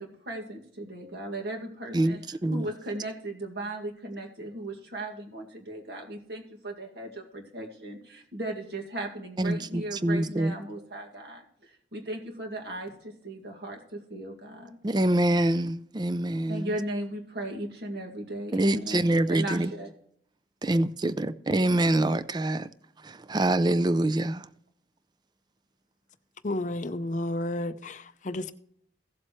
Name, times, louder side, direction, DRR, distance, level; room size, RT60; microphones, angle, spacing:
voice 1, 0.0-2.2 2.5-14.8 16.5-19.9, right 1 dB, 60° right, 2.1 m, -37 dB
voice 2, 1.9-2.7 9.4-10.5 14.8-16.8 18.5-19.7 20.6-22.7 23.0-24.5, right 1 dB, 25° right, 0.4 m, -25 dB
voice 3, 26.4-28.5, left 1 dB, 40° left, 0.6 m, -31 dB
16.5 x 7.6 x 3.1 m
head